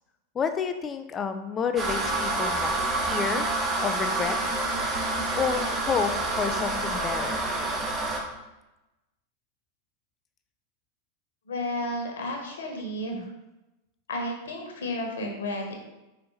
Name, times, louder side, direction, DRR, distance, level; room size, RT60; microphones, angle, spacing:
voice 1, 0.3-3.5 3.8-4.6 5.3-7.4 12.8-13.3, left 6 dB, 25° left, 8 dB, 0.4 m, -30 dB
sound 1, 1.8-8.2, right 2 dB, 25° right, 1.3 m, -28 dB
voice 2, 11.5-13.3 14.1-15.7, left 1 dB, 70° left, 1 dB, 1.4 m, -32 dB
5.5 x 4.2 x 4.0 m, 0.98 s
figure-of-eight pair, 90°, 0 cm